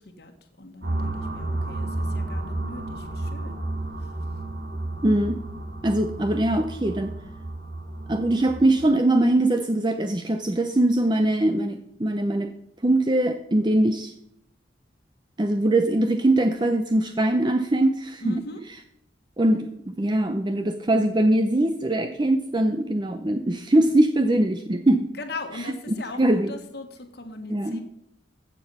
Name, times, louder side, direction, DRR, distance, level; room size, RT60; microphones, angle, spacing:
voice 1, 0.0-3.6 4.0-4.1 18.2-18.6 25.2-27.8, left 2 dB, 60° left, 5 dB, 1.4 m, -39 dB
sound 1, 0.8-8.9, right 2 dB, 65° right, 3.1 m, -32 dB
voice 2, 5.0-5.4 5.8-7.1 8.1-12.5 12.8-14.1 15.4-18.3 19.4-25.1 25.9-26.5 27.5-27.8, right 1 dB, 25° right, 7 dB, 0.6 m, -22 dB
15.5 x 6.8 x 5.6 m, 0.76 s
head